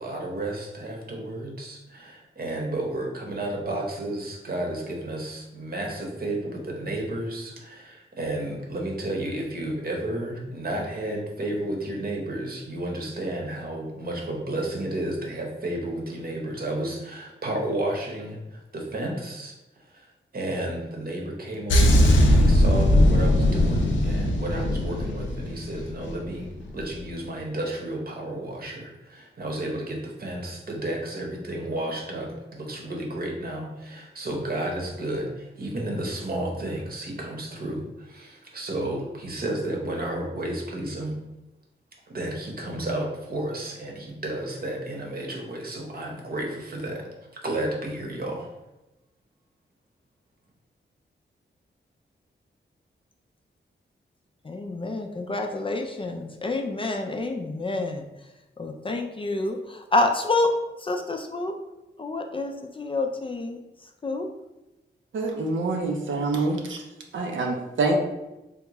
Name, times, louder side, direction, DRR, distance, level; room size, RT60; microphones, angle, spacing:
voice 1, 0.0-41.1 42.1-48.5, right 1 dB, 50° right, 0 dB, 0.9 m, -32 dB
sound 1, 21.7-26.3 26.5-26.8, left 1 dB, 80° left, 0.5 m, -20 dB
voice 2, 54.5-58.1 58.6-60.5 60.8-61.5 62.0-63.6 64.0-64.3, left 2 dB, 25° left, 3 dB, 0.3 m, -28 dB
voice 3, 65.1-66.8 67.1-68.0, right 3 dB, 80° right, 1 dB, 0.6 m, -26 dB
3.6 x 2.3 x 3.0 m, 0.99 s
wide cardioid pair, 85°, 19 cm